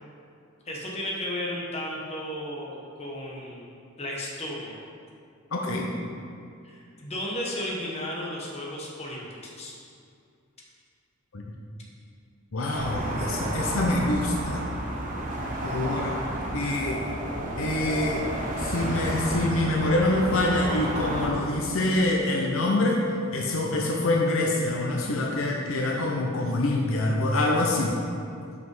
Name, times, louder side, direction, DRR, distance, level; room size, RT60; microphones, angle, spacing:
voice 1, 0.6-4.8 6.6-9.7, left 1 dB, 30° left, -3 dB, 1.2 m, -34 dB
voice 2, 5.5-5.9 11.3-11.4 12.5-14.7 15.6-16.1 16.5-17.2 17.6-18.3 18.6-23.0 23.3-28.0, left 2 dB, 75° left, 0 dB, 0.7 m, -25 dB
sound 1, 12.7-21.3, right 1 dB, 40° right, 1.1 m, -31 dB
6.1 x 5.1 x 5.4 m, 2.4 s
head